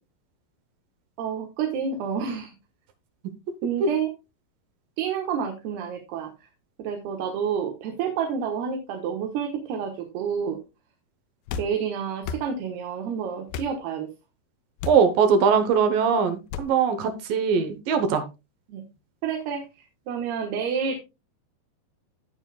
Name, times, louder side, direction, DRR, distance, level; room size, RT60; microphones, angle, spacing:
voice 1, 1.2-2.5 3.6-4.1 5.0-6.3 6.8-10.6 11.6-14.1 18.7-18.8 19.2-21.0, right 7 dB, 90° right, 3 dB, 3.2 m, -29 dB
sound 1, 11.5-11.7 12.2-12.5 13.5-13.7 14.8-15.1 16.5-16.7, left 7 dB, 75° left, 2.4 m, -33 dB
voice 2, 14.9-18.3, right 6 dB, 70° right, 9 dB, 2.4 m, -21 dB
17.5 x 6.0 x 2.3 m, 0.26 s
omnidirectional pair, 4.5 m